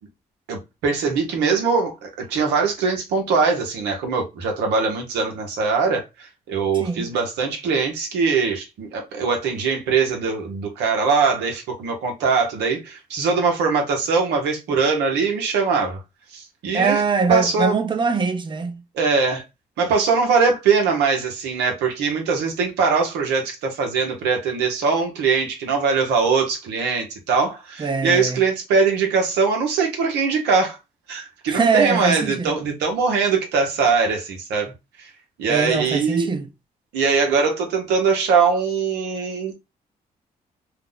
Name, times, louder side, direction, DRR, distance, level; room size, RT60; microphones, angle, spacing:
voice 1, 0.5-16.0 16.3-17.0 17.3-17.8 18.9-19.4 19.8-30.8 31.1-34.7 35.0-35.1 35.4-36.3 36.9-39.5, right 5 dB, 90° right, 0.8 m, -21 dB
voice 2, 16.7-18.8 27.8-28.4 31.5-32.5 35.5-36.4, right 4 dB, 30° right, 0.6 m, -22 dB
2.5 x 2.0 x 3.7 m
supercardioid pair, 60°, 17 cm